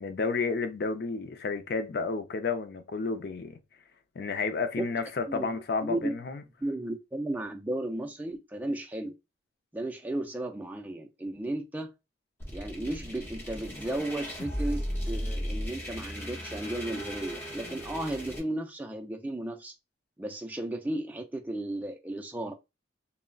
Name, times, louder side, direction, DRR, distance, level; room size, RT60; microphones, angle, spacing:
voice 1, 0.0-3.6 4.2-6.4, left 4 dB, 55° left, 0.4 m, -31 dB
voice 2, 5.3-6.1 6.6-9.2 9.7-11.9 12.5-19.7 20.2-22.5, right 1 dB, 10° right, 0.3 m, -34 dB
sound 1, 12.4-18.4, equal, 15° left, 0.8 m, -36 dB
3.6 x 2.1 x 2.2 m
head